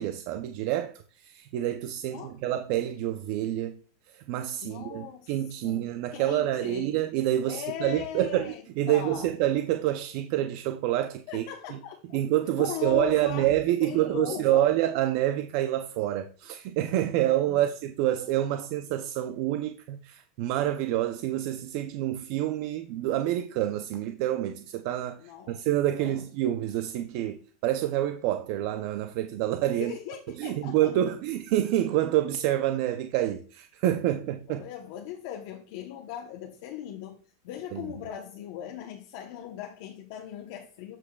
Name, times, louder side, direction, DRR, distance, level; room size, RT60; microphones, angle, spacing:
voice 1, 0.0-3.8 4.1-11.4 11.7-11.8 12.1-29.9 30.4-34.6 37.7-37.9, right 13 dB, 55° right, 0.5 m, -27 dB
voice 2, 4.6-5.3 5.6-5.8 6.1-6.9 7.5-8.6 8.9-9.3 11.3-12.2 12.6-14.6 17.5-17.6 25.2-25.6 26.0-26.2 29.8-30.9 34.5-37.2 37.4-41.0, left 10 dB, 60° left, 0.8 m, -38 dB
13.0 x 5.1 x 2.3 m
supercardioid pair, 140°, 0 cm